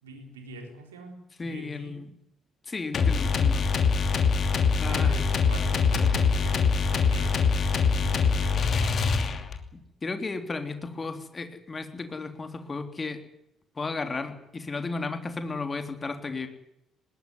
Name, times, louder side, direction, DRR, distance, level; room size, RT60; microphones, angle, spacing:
voice 1, 0.0-1.9 4.8-7.4 7.9-9.1, right 2 dB, 80° right, 4 dB, 4.2 m, -44 dB
voice 2, 1.4-2.1 2.7-3.7 4.8-5.2 10.0-13.2 13.8-16.5, left 3 dB, 30° left, 8 dB, 3.6 m, -34 dB
sound 1, 2.9-9.7, left 5 dB, 45° left, 2.8 m, -24 dB
20.0 x 20.0 x 9.7 m, 0.80 s
figure-of-eight pair, 45°, 0 cm